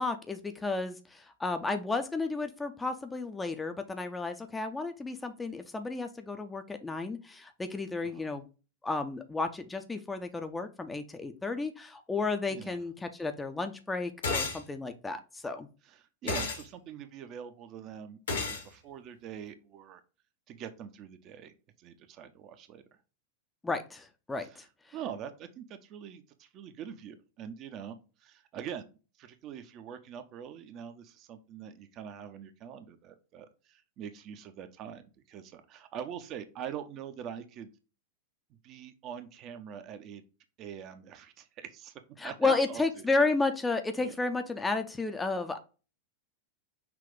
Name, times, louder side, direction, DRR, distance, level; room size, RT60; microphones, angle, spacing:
voice 1, 0.0-8.4 8.8-15.7 16.2-16.3 23.6-24.7 42.2-45.6, left 3 dB, 10° left, 7 dB, 0.5 m, -32 dB
voice 2, 12.5-12.8 15.8-20.0 20.5-22.8 24.4-24.6 24.9-28.9 29.2-37.7 38.6-40.2 40.6-41.9 42.2-43.1 44.0-44.2, right 8 dB, 35° right, 9 dB, 0.6 m, -44 dB
sound 1, 14.2-14.6 16.3-16.6 18.3-18.6, left 4 dB, 65° left, 1.1 m, -31 dB
5.9 x 2.4 x 3.6 m, 0.33 s
figure-of-eight pair, 90°, 0 cm